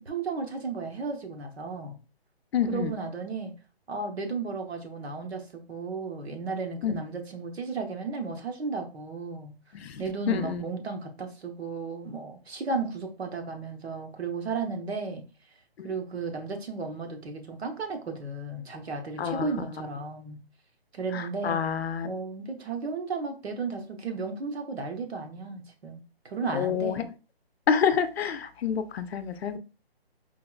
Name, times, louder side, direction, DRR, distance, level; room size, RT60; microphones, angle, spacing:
voice 1, 0.0-2.0 2.7-3.5 3.9-9.5 10.0-15.2 15.8-20.4 20.9-21.6 22.0-27.0, right 4 dB, 90° right, 0.9 m, -34 dB
voice 2, 2.5-2.9 6.8-6.9 9.7-10.6 19.2-19.5 21.1-22.1 26.5-27.1 27.7-29.6, left 7 dB, 75° left, 0.5 m, -28 dB
4.5 x 2.3 x 2.2 m
hypercardioid pair, 175°, 31 cm